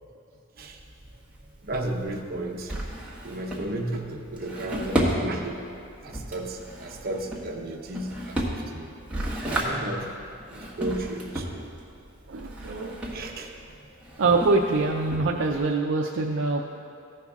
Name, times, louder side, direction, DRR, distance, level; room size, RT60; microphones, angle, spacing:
Drawer open or close, 0.6-15.7, right 1 dB, 5° right, 1.3 m, -33 dB
voice 1, 1.6-2.7 3.2-5.6 6.0-8.9 9.5-11.6 13.1-13.5 13.9-14.2, right 1 dB, 45° right, 1 dB, 0.9 m, -34 dB
voice 2, 12.3-13.0 14.2-16.6, right 3 dB, 65° right, 0 dB, 0.5 m, -24 dB
15.5 x 5.5 x 3.6 m, 2.5 s
head